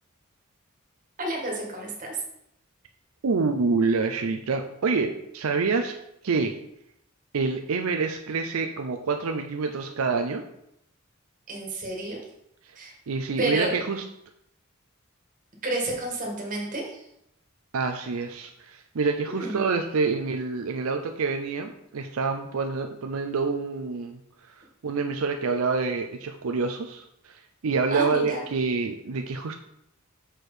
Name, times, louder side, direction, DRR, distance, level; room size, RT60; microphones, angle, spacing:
voice 1, 1.2-2.2 11.5-12.2 12.8-12.9 13.4-13.7 15.6-17.1 19.3-19.6 27.9-28.4, right 2 dB, 40° right, -1 dB, 1.8 m, -30 dB
voice 2, 3.2-6.0 6.2-6.6 7.3-10.4 12.7-12.8 13.1-14.0 17.7-24.2 24.5-29.5, right 4 dB, 80° right, 5 dB, 0.5 m, -27 dB
6.4 x 4.4 x 4.9 m, 0.77 s
head